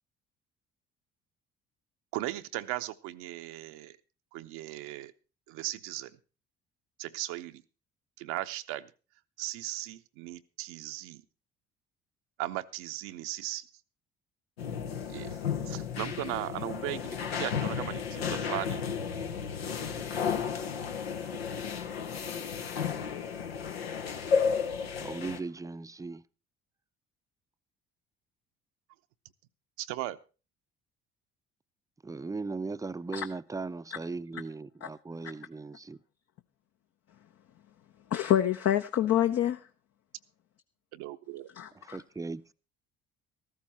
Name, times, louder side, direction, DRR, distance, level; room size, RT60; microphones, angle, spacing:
voice 1, 2.1-4.0 4.3-5.1 5.5-6.2 7.0-7.6 8.2-8.9 9.4-11.2 12.4-13.7 15.1-15.4 15.7-18.8 29.8-30.2 40.9-41.5, right 16 dB, 70° right, 0.8 m, -37 dB
sound 1, 14.6-25.4, left 6 dB, 85° left, 1.0 m, -33 dB
voice 2, 25.0-26.2 32.0-36.0 41.8-42.5, right 3 dB, 10° right, 0.6 m, -38 dB
voice 3, 38.1-39.6 41.5-42.0, left 11 dB, 55° left, 0.9 m, -27 dB
14.0 x 13.5 x 4.3 m
hypercardioid pair, 55°, 30 cm